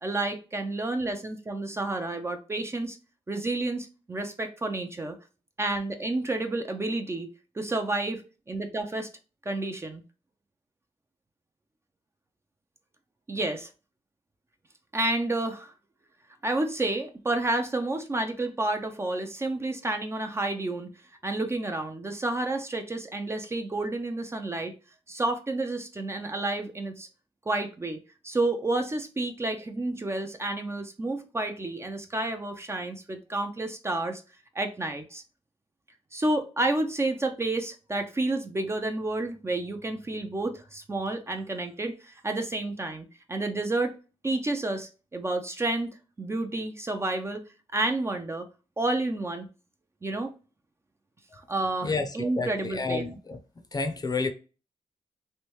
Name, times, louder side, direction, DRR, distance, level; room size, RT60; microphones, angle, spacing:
voice 1, 0.0-3.0 3.3-5.2 5.6-7.3 7.6-8.2 8.5-9.1 9.5-10.0 13.3-13.7 14.9-15.7 16.4-20.9 21.2-24.7 25.1-27.1 27.5-28.0 28.2-34.2 34.6-35.2 36.1-43.9 44.2-47.4 47.7-48.5 48.8-49.5 50.0-50.3 51.5-53.0, right 2 dB, 20° right, 0.5 m, -30 dB
voice 2, 51.8-53.4 53.7-54.3, left 4 dB, 35° left, 0.6 m, -30 dB
3.2 x 2.6 x 3.0 m
cardioid pair, 85°, 12 cm